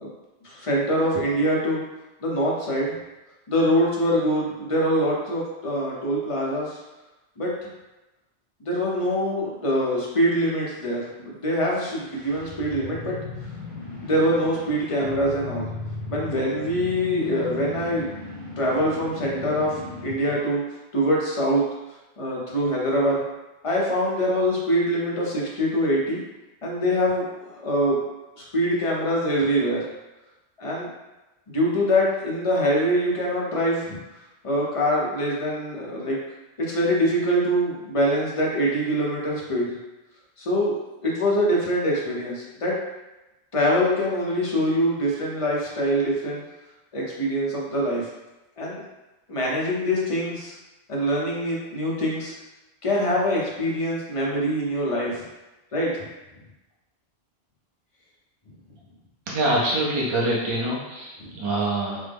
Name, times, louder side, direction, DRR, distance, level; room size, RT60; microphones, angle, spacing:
voice 1, 0.4-1.8 2.2-2.9 3.5-6.8 7.4-7.5 8.7-13.2 14.0-15.7 16.1-18.1 18.6-20.6 20.9-21.6 22.2-23.2 23.6-26.2 26.6-28.0 28.5-29.9 30.6-30.9 31.5-34.0 34.4-36.2 36.7-39.7 40.4-42.7 43.5-46.4 46.9-48.1 48.6-48.8 49.3-50.5 50.9-52.4 52.8-55.2 55.7-56.0 61.2-61.3, equal, 35° left, -4 dB, 0.7 m, -24 dB
sound 1, 11.7-20.4, left 2 dB, 15° left, 1.1 m, -37 dB
voice 2, 59.3-62.0, right 1 dB, 35° right, -6 dB, 0.5 m, -25 dB
3.5 x 2.0 x 3.4 m, 1.0 s
omnidirectional pair, 1.1 m